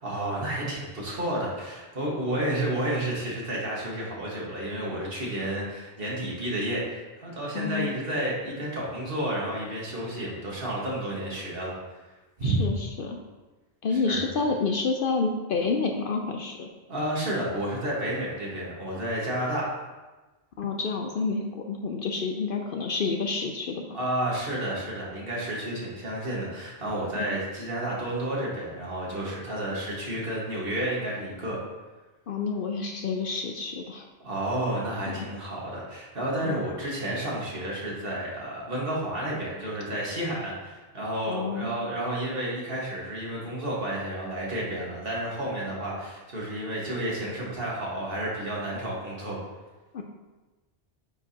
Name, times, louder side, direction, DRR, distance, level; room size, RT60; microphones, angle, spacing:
voice 1, 0.0-11.8 12.4-12.7 13.9-14.2 16.9-19.7 23.9-31.6 34.2-49.4, right 1 dB, 55° right, -5 dB, 1.9 m, -31 dB
voice 2, 7.5-7.9 12.4-13.2 13.8-16.7 20.6-23.8 27.1-27.3 32.3-34.1 35.1-35.3 36.4-36.6 41.3-41.7 49.9-50.0, left 4 dB, 60° left, 3 dB, 0.7 m, -29 dB
8.9 x 4.6 x 2.8 m, 1.2 s
omnidirectional pair, 1.2 m